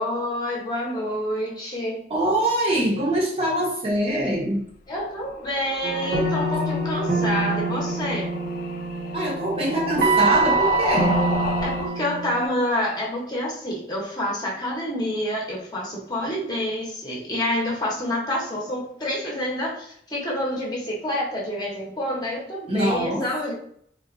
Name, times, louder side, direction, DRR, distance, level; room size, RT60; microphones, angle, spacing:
voice 1, 0.0-2.1 4.9-8.3 11.6-23.5, left 1 dB, 20° left, 0.7 m, -28 dB
voice 2, 2.1-4.7 9.1-11.2 22.7-23.3, right 1 dB, 30° right, 0.6 m, -23 dB
sound 1, 5.2-11.9, left 4 dB, 50° left, 0.4 m, -32 dB
sound 2, 5.8-12.4, right 3 dB, 75° right, 0.9 m, -25 dB
3.6 x 2.2 x 2.5 m
head